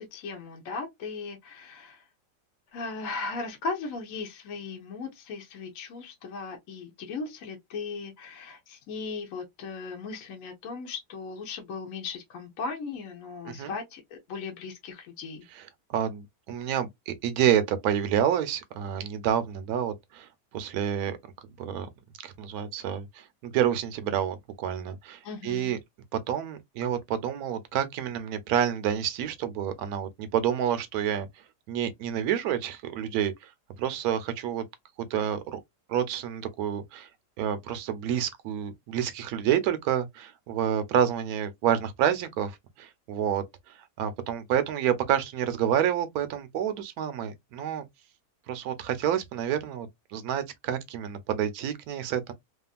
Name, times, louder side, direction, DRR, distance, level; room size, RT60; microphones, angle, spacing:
voice 1, 0.0-2.0 2.7-15.4 25.2-25.8, left 4 dB, 60° left, 1.0 m, -37 dB
voice 2, 15.9-21.2 21.6-21.9 22.2-25.8 26.1-31.3 31.7-33.5 33.8-34.7 35.0-35.6 35.9-37.1 37.4-47.9 48.5-52.3, right 9 dB, 70° right, 1.0 m, -29 dB
2.8 x 2.4 x 2.3 m
omnidirectional pair, 1.8 m